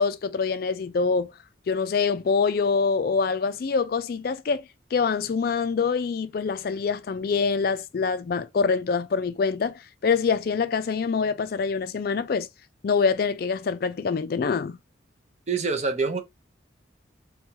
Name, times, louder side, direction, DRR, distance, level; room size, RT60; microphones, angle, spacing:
voice 1, 0.0-1.3 1.7-4.6 4.9-12.5 12.8-14.8, left 5 dB, 50° left, 0.3 m, -25 dB
voice 2, 15.5-16.2, right 4 dB, 35° right, 0.6 m, -25 dB
4.4 x 2.3 x 2.8 m
head